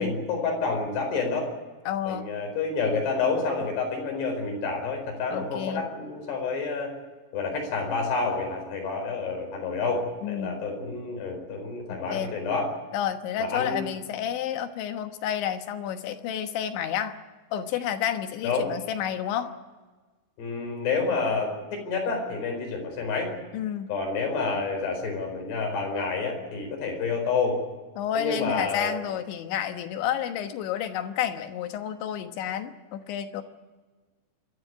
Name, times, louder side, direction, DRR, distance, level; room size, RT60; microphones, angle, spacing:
voice 1, 0.0-1.5 2.1-6.9 7.3-12.7 13.4-13.8 18.4-18.7 20.4-23.3 23.9-27.6 28.1-28.9, left 4 dB, 65° left, 2 dB, 6.7 m, -29 dB
voice 2, 1.9-2.3 5.3-5.8 10.2-10.6 11.9-12.3 12.9-17.2 17.5-19.5 23.5-23.9 28.0-33.4, left 9 dB, 85° left, 7 dB, 3.6 m, -30 dB
27.5 x 13.0 x 9.5 m, 1.3 s
omnidirectional pair, 5.2 m